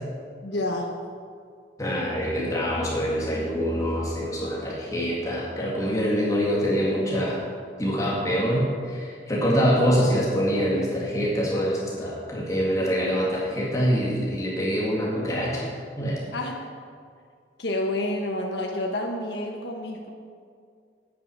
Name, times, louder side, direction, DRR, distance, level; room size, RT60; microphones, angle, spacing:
voice 1, 0.4-0.9 16.3-16.6 17.6-20.1, left 1 dB, 70° left, 0 dB, 1.1 m, -29 dB
voice 2, 1.8-7.4 7.8-15.7 16.0-16.2, equal, 20° left, -5 dB, 2.2 m, -25 dB
9.5 x 9.3 x 6.4 m, 2.2 s
head